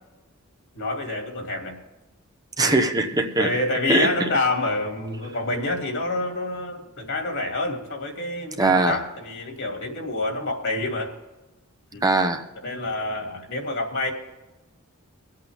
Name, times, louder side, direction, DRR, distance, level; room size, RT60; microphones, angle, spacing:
voice 1, 0.7-1.8 2.6-2.7 3.4-11.1 11.9-12.0 12.6-14.1, left 2 dB, 60° left, 3 dB, 2.7 m, -27 dB
voice 2, 2.6-3.5 3.9-4.3 8.6-9.0 12.0-12.4, right 2 dB, 15° right, 5 dB, 1.0 m, -21 dB
23.5 x 8.5 x 3.6 m, 1.1 s
head